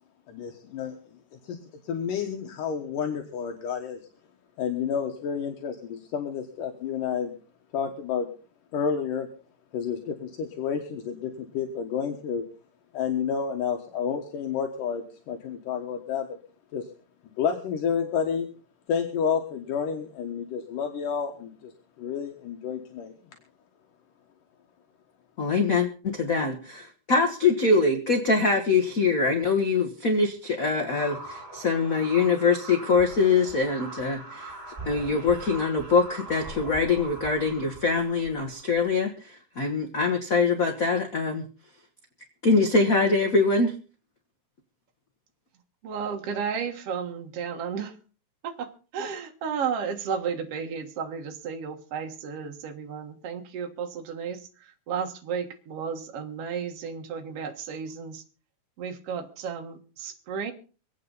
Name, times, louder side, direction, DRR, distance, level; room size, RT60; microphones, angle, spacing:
voice 1, 0.3-1.0 1.4-1.6 1.8-4.0 4.6-7.3 7.7-8.3 8.7-9.3 9.7-12.4 12.9-16.4 16.7-16.9 17.4-18.5 18.9-21.7 22.0-23.1, left 7 dB, 80° left, 3 dB, 2.9 m, -30 dB
voice 2, 25.4-34.5 34.8-41.4 42.4-43.7, left 4 dB, 55° left, 3 dB, 0.9 m, -23 dB
sound 1, 30.9-38.9, right 2 dB, 10° right, 4.8 m, -42 dB
voice 3, 45.8-48.0 48.4-58.2 58.8-60.5, right 6 dB, 55° right, 3 dB, 2.3 m, -33 dB
25.5 x 8.8 x 3.9 m, 0.38 s
omnidirectional pair, 3.7 m